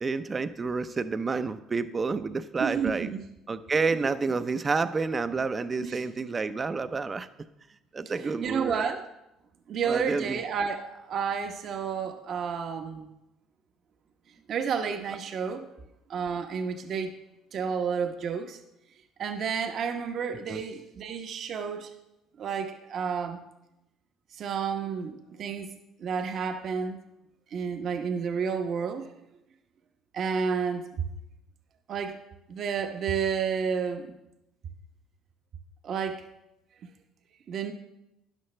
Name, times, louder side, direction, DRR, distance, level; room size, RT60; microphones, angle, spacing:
voice 1, 0.0-3.1 3.5-7.3 7.9-8.9 9.8-10.4 20.5-20.6, right 4 dB, 30° right, 12 dB, 0.6 m, -29 dB
voice 2, 2.6-3.2 5.8-6.0 8.2-9.0 9.7-13.1 14.5-15.7 16.1-17.1 17.5-18.6 19.2-21.9 22.4-23.4 24.4-25.7 26.0-27.0 27.5-29.1 30.1-30.8 31.9-32.2 32.5-34.2 35.8-36.2 37.5-37.7, right 6 dB, 55° right, 5 dB, 1.0 m, -31 dB
12.5 x 10.5 x 3.3 m, 0.90 s
supercardioid pair, 95°, 0 cm